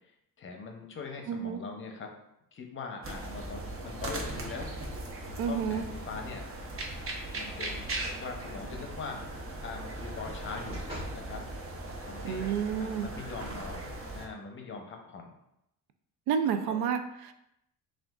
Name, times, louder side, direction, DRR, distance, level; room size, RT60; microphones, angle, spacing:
voice 1, 0.4-2.1 2.5-4.7 5.4-6.5 7.3-9.3 9.6-10.8 11.1-11.4 12.0-13.8 14.1-15.4 16.7-16.8, left 4 dB, 35° left, 2 dB, 0.7 m, -42 dB
voice 2, 1.3-1.6 5.4-5.8 12.2-13.1 16.3-17.3, right 7 dB, 80° right, 8 dB, 0.5 m, -30 dB
sound 1, 3.0-14.3, right 2 dB, 35° right, 0.8 m, -39 dB
sound 2, 5.9-6.4 7.5-7.9 8.3-8.4 10.0-11.3 11.9-12.0, equal, 15° right, 1.2 m, -45 dB
5.8 x 2.5 x 2.3 m, 0.81 s
cardioid pair, 115°, 37 cm